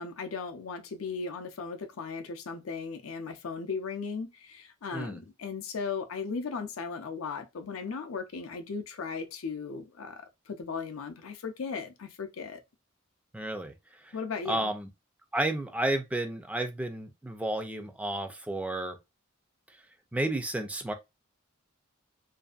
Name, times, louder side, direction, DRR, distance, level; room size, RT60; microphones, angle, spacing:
voice 1, 0.0-12.6 14.1-14.7, left 5 dB, 85° left, 0.5 m, -37 dB
voice 2, 13.3-13.7 14.0-14.1 14.5-14.9 15.3-19.0 20.1-20.9, right 1 dB, 5° right, 0.3 m, -32 dB
2.6 x 2.4 x 2.3 m
head